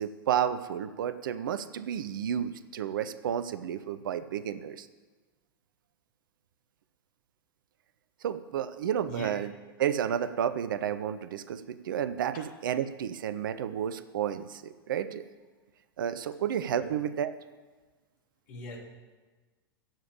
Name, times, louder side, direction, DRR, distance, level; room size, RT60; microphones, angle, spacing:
voice 1, 0.0-4.9 8.2-9.5 9.8-15.2 16.0-17.3, right 9 dB, 60° right, 14 dB, 0.7 m, -31 dB
voice 2, 18.5-18.8, left 2 dB, 50° left, 0 dB, 3.1 m, -41 dB
15.5 x 7.1 x 8.6 m, 1.3 s
figure-of-eight pair, 90°, 12 cm